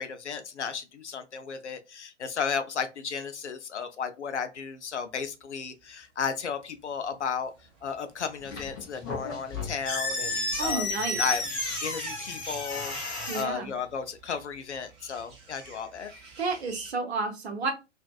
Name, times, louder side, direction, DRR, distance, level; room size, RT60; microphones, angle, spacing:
voice 1, 0.0-7.5 7.8-10.8 11.2-11.4 11.8-16.1, left 6 dB, 65° left, 0.6 m, -34 dB
sound 1, 5.8-16.9, right 3 dB, 20° right, 0.7 m, -50 dB
sound 2, 8.4-13.4, left 2 dB, 20° left, 0.4 m, -32 dB
voice 2, 10.6-11.2 13.3-13.7 16.4-17.7, right 4 dB, 60° right, 0.9 m, -31 dB
2.5 x 2.5 x 2.3 m
figure-of-eight pair, 120°, 37 cm